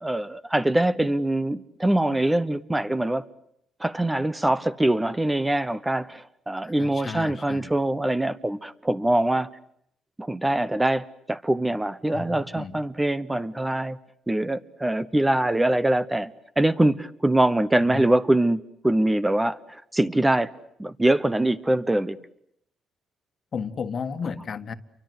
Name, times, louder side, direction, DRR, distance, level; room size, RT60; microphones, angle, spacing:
voice 1, 0.0-3.2 3.8-9.5 10.2-14.0 14.3-18.6 18.8-20.5 20.8-22.2, right 1 dB, 10° right, 1.0 m, -23 dB
voice 2, 6.6-7.7 12.1-12.8 17.8-18.1 23.5-24.7, left 5 dB, 50° left, 1.7 m, -33 dB
29.5 x 24.0 x 8.0 m
cardioid pair, 90°, 0 cm